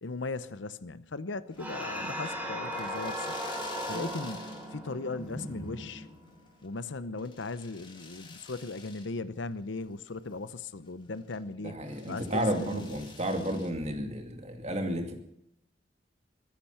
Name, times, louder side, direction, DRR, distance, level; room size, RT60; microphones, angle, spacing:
voice 1, 0.0-3.4 3.9-6.1 6.6-11.8 12.1-12.8, left 3 dB, 75° left, 15 dB, 0.8 m, -38 dB
sound 1, 1.5-4.9 5.2-5.9 6.3-9.1 9.5-9.6 10.0-11.4 11.9-13.7, left 4 dB, 25° left, 2.3 m, -49 dB
sound 2, 1.6-6.4, equal, 10° right, 3.5 m, -37 dB
voice 2, 11.6-15.2, right 1 dB, 35° right, 4 dB, 2.4 m, -32 dB
23.0 x 10.0 x 5.7 m, 0.80 s
head